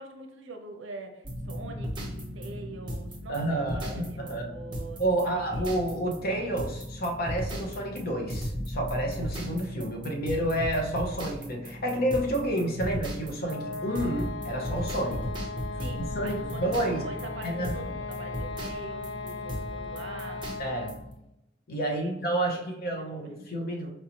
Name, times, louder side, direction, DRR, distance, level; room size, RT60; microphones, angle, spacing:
voice 1, 0.0-5.6 15.8-20.4 21.9-23.3, right 2 dB, 70° right, 4 dB, 0.6 m, -44 dB
sound 1, 1.2-21.1, equal, 25° right, 0.9 m, -37 dB
voice 2, 3.3-4.5 5.0-15.2 16.1-17.1 17.4-17.7 20.6-20.9 21.7-23.9, right 1 dB, 50° left, 2 dB, 0.8 m, -30 dB
sound 2, 13.4-21.1, left 4 dB, 75° left, 0.3 m, -38 dB
4.6 x 2.6 x 2.9 m, 0.87 s
head